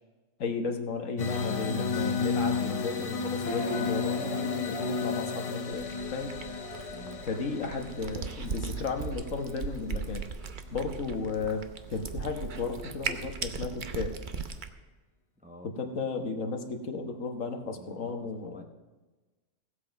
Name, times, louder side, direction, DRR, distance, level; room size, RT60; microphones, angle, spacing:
voice 1, 0.4-6.4 7.3-10.3 10.7-14.1 15.6-18.6, left 4 dB, 85° left, 4 dB, 1.6 m, -34 dB
sound 1, 1.2-10.0, left 5 dB, 40° left, 0.5 m, -33 dB
sound 2, 3.4-8.2, left 1 dB, 65° left, 1.3 m, -41 dB
Cat, 5.7-14.7, right 5 dB, 45° right, 0.8 m, -38 dB
voice 2, 6.9-7.3 15.4-15.7 17.7-18.6, right 1 dB, 5° right, 3 dB, 0.7 m, -50 dB
16.0 x 8.2 x 5.2 m, 1.2 s
omnidirectional pair, 1.3 m